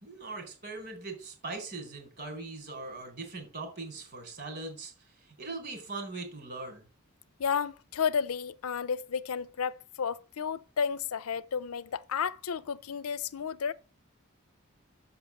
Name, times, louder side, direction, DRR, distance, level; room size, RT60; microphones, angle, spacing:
voice 1, 0.0-6.9, right 3 dB, 50° right, 4.2 m, -41 dB
voice 2, 7.4-13.7, left 6 dB, 80° left, 0.5 m, -32 dB
7.0 x 5.9 x 7.0 m
head